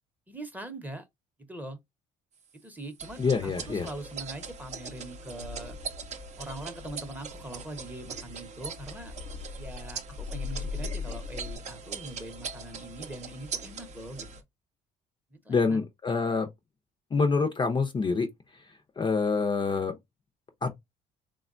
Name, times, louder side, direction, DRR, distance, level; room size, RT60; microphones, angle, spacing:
voice 1, 0.3-1.0 1.5-1.8 2.6-5.8 6.4-9.1 9.6-14.3 15.3-15.8, right 1 dB, 10° right, 0.8 m, -42 dB
sound 1, 3.0-14.4, right 5 dB, 45° right, 0.6 m, -41 dB
voice 2, 3.2-3.9 15.5-16.5 17.1-18.3 19.0-19.9 20.6-20.7, left 4 dB, 25° left, 0.5 m, -26 dB
sound 2, 5.4-11.6, left 5 dB, 75° left, 0.9 m, -40 dB
3.4 x 2.2 x 2.4 m
cardioid pair, 110°, 17 cm